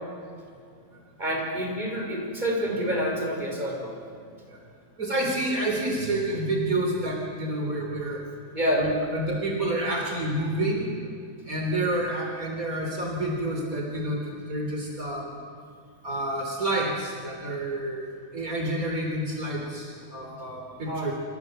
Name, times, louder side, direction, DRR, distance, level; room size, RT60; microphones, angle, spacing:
voice 1, 1.2-3.9 8.5-8.9 11.7-11.9 20.9-21.1, equal, 30° right, 0 dB, 5.8 m, -28 dB
voice 2, 5.0-8.2 8.8-10.9 11.5-15.4 16.0-21.1, right 1 dB, 65° right, 1 dB, 4.0 m, -29 dB
27.5 x 26.0 x 7.7 m, 2.4 s
omnidirectional pair, 1.6 m